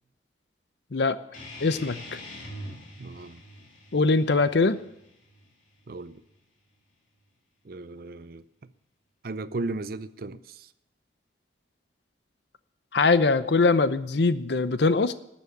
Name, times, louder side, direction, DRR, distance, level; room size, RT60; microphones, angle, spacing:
sound 1, 1.3-6.4, left 1 dB, 45° left, 2.6 m, -44 dB
voice 1, 1.6-2.0 3.9-4.8 12.9-15.1, left 3 dB, 70° left, 0.7 m, -22 dB
voice 2, 3.0-3.4 5.9-6.2 7.6-8.4 9.2-10.7, right 2 dB, 55° right, 0.6 m, -36 dB
12.5 x 7.3 x 8.1 m
head